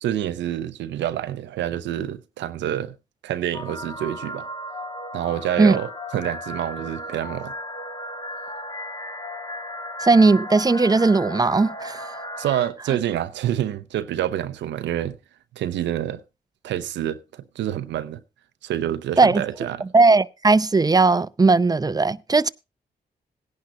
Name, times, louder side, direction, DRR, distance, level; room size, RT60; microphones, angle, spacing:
voice 1, 0.0-3.0 3.2-4.5 5.1-7.5 12.4-15.2 15.5-16.2 16.6-18.2 18.6-19.9, right 11 dB, 85° right, 0.6 m, -27 dB
sound 1, 3.5-12.7, left 1 dB, 25° left, 1.5 m, -35 dB
voice 2, 10.0-12.1 19.2-19.4 19.8-22.5, right 3 dB, 20° right, 0.6 m, -17 dB
17.5 x 10.5 x 2.8 m
supercardioid pair, 45°, 18 cm